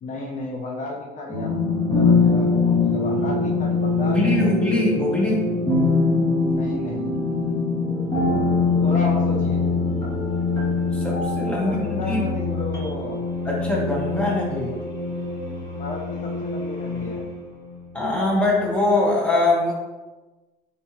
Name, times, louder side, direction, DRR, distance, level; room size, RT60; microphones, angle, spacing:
voice 1, 0.0-4.5 6.5-7.2 8.8-9.6 11.5-13.2 15.8-17.3, left 3 dB, 50° left, 0 dB, 0.6 m, -33 dB
sound 1, 1.3-17.8, left 3 dB, 20° left, 1.5 m, -23 dB
voice 2, 4.0-5.6 10.9-12.3 13.4-14.8 17.9-19.7, left 1 dB, 5° left, -4 dB, 1.3 m, -22 dB
4.2 x 3.4 x 2.9 m, 1.2 s
cardioid pair, 110°, 17 cm